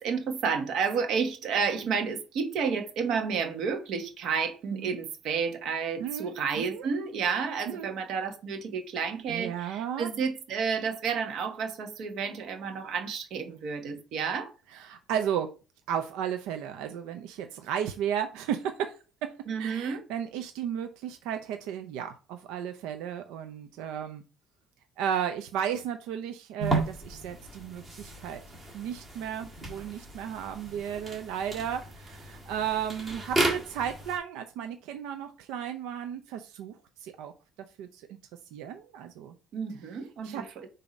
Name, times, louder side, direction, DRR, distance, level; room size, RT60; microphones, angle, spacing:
voice 1, 0.0-14.5 19.5-20.0 39.5-40.7, right 6 dB, 55° right, 1.1 m, -31 dB
voice 2, 6.0-6.8 7.7-7.9 9.3-10.1 14.7-15.5 15.9-18.9 19.2-19.3 19.6-24.2 25.0-28.4 28.7-37.3 37.8-38.2 38.5-39.3 40.2-40.4, right 9 dB, 85° right, 0.6 m, -34 dB
sound 1, 26.6-34.2, right 2 dB, 15° right, 1.5 m, -34 dB
6.9 x 2.8 x 5.2 m
cardioid pair, 165°, 0 cm